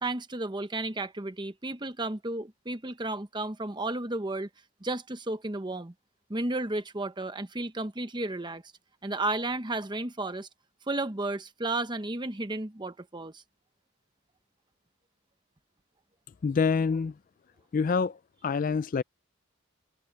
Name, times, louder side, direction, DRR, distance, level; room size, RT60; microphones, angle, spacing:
voice 1, 0.0-4.5 4.8-5.9 6.3-8.6 9.0-10.5 10.9-13.4, right 2 dB, 20° right, 1.0 m, -33 dB
voice 2, 16.4-17.2 17.7-19.0, left 5 dB, 40° left, 0.3 m, -27 dB
open air
head